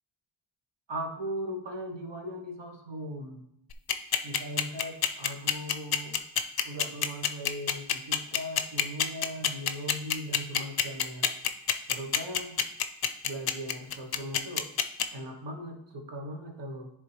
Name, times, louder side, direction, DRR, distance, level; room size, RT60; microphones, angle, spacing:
voice 1, 0.9-3.4 4.2-6.2 6.6-11.3 11.9-12.6 13.2-14.7 15.1-16.9, equal, 70° right, 2 dB, 1.3 m, -39 dB
sound 1, 3.7-15.0, left 8 dB, 55° left, 0.5 m, -26 dB
10.0 x 3.6 x 3.3 m, 0.79 s
wide cardioid pair, 70°, 45 cm